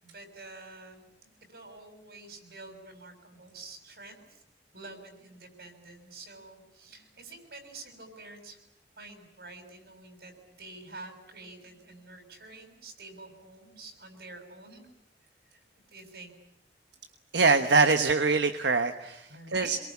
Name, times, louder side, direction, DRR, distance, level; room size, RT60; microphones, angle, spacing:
voice 1, 0.0-4.4 4.7-8.6 9.0-14.9 15.5-15.6 15.9-16.3 19.3-19.8, right 3 dB, 65° right, 5 dB, 6.8 m, -48 dB
voice 2, 17.3-19.8, right 4 dB, 80° right, 8 dB, 1.2 m, -24 dB
27.0 x 23.5 x 8.6 m, 0.83 s
head